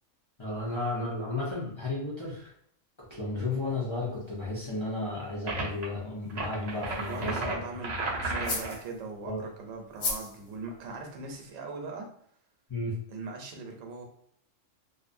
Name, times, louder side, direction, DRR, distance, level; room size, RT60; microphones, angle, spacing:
voice 1, 0.4-2.5 3.1-7.5 9.3-9.4 12.7-13.0, left 2 dB, 30° left, -7 dB, 0.5 m, -33 dB
sound 1, 3.6-11.5, left 3 dB, 75° left, 1.0 m, -42 dB
sound 2, 5.5-5.9 6.3-8.8, right 2 dB, 45° right, 0.5 m, -34 dB
voice 2, 7.1-12.1 13.1-14.0, right 4 dB, 85° right, 2 dB, 1.0 m, -40 dB
2.6 x 2.4 x 2.5 m, 0.65 s
omnidirectional pair, 1.3 m